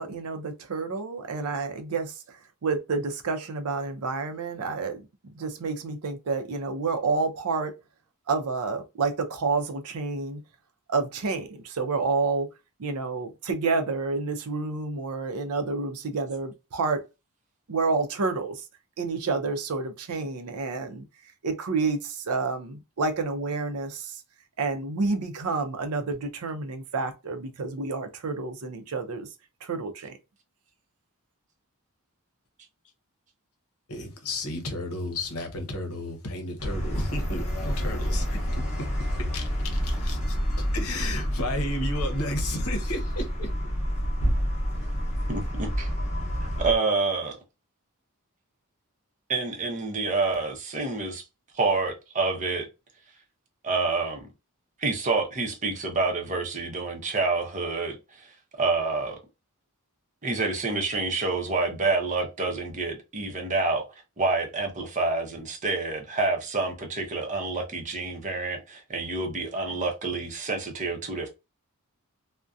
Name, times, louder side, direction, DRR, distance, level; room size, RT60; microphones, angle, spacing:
voice 1, 0.0-5.0 5.2-7.7 8.3-10.4 10.9-12.5 12.8-17.0 17.7-18.6 19.0-21.0 21.4-24.2 24.6-29.3 29.6-30.1, right 4 dB, 75° right, 0.5 m, -29 dB
voice 2, 33.9-43.5, left 1 dB, 70° left, 0.8 m, -33 dB
sound 1, 36.6-46.8, equal, 30° left, 0.8 m, -28 dB
voice 3, 45.3-45.9 46.4-47.4 49.3-51.2 51.5-52.7 53.6-54.3 54.8-59.2 60.2-63.8 64.2-71.3, right 3 dB, 35° right, 0.7 m, -28 dB
2.6 x 2.1 x 2.3 m
head